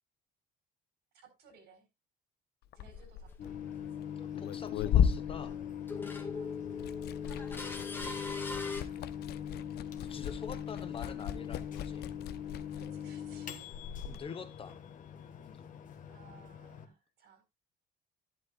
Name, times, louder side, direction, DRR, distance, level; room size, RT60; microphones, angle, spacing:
voice 1, 1.1-1.8 2.7-3.5 6.3-6.5 12.8-13.7 16.1-17.4, right 5 dB, 75° right, 4.4 m, -59 dB
Liquid, 2.6-6.3 6.6-14.2, left 8 dB, 70° left, 0.8 m, -35 dB
sound 1, 2.8-2.9 4.2-4.3 4.7-5.6 5.9-8.8, left 3 dB, 10° left, 1.8 m, -40 dB
Microwave oven, 3.4-16.9, left 9 dB, 50° left, 1.5 m, -42 dB
voice 2, 4.2-5.6 10.0-12.1 14.0-14.8 15.4-15.7, left 6 dB, 30° left, 1.0 m, -45 dB
11.5 x 11.0 x 2.4 m
cardioid pair, 140°, 17 cm